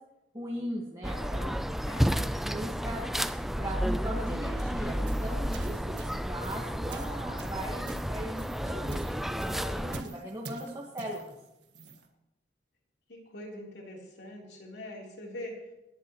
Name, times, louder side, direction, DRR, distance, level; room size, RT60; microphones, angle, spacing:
voice 1, 0.3-1.6 1.9-3.0 3.6-11.3, right 1 dB, 20° right, -4 dB, 1.5 m, -39 dB
sound 1, 1.0-10.0, equal, ahead, 0.4 m, -31 dB
sound 2, 4.9-12.1, right 3 dB, 75° right, 1.6 m, -48 dB
voice 2, 13.1-15.7, left 1 dB, 75° left, -2 dB, 3.5 m, -43 dB
26.0 x 11.0 x 3.1 m, 0.96 s
head